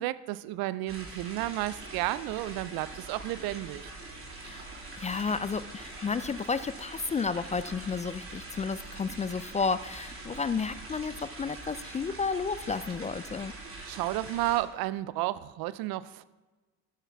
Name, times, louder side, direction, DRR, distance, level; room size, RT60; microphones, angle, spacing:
voice 1, 0.0-3.9 13.9-16.2, right 16 dB, 65° right, 17 dB, 0.6 m, -32 dB
sound 1, 0.9-14.6, right 2 dB, 35° right, 3.3 m, -44 dB
voice 2, 4.4-13.5, left 5 dB, 20° left, 15 dB, 0.4 m, -32 dB
13.5 x 10.0 x 3.5 m, 1.3 s
hypercardioid pair, 55°, 39 cm